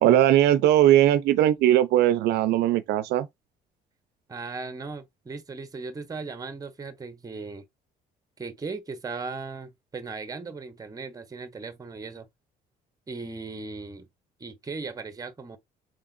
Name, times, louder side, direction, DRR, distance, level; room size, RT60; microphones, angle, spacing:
voice 1, 0.0-3.3, right 12 dB, 80° right, 0.6 m, -19 dB
voice 2, 4.3-7.6 8.4-12.3 13.1-14.1 14.4-15.6, right 4 dB, 20° right, 0.9 m, -37 dB
5.1 x 3.6 x 2.5 m
cardioid pair, 110°, 17 cm